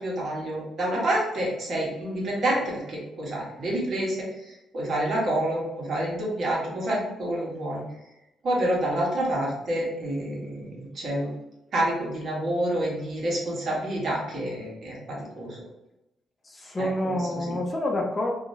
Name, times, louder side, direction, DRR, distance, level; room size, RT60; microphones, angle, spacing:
voice 1, 0.0-4.2 4.7-7.8 8.4-11.3 11.7-15.5 16.8-16.9 17.5-17.6, right 1 dB, 60° right, -4 dB, 1.3 m, -28 dB
voice 2, 16.4-18.3, left 1 dB, 25° left, 0 dB, 0.6 m, -28 dB
2.9 x 2.7 x 2.7 m, 0.90 s
cardioid pair, 90°, 0 cm